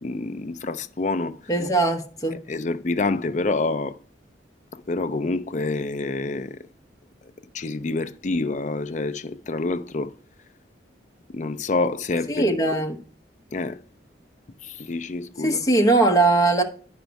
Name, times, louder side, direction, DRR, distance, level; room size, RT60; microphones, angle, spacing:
voice 1, 0.0-1.4 2.5-4.0 4.7-6.6 7.5-10.1 11.3-12.8 13.5-13.8 14.6-15.6, left 3 dB, 40° left, 0.5 m, -27 dB
voice 2, 1.5-2.4 12.3-13.0 15.4-16.6, right 2 dB, 20° left, 1.0 m, -20 dB
10.0 x 5.2 x 4.6 m
head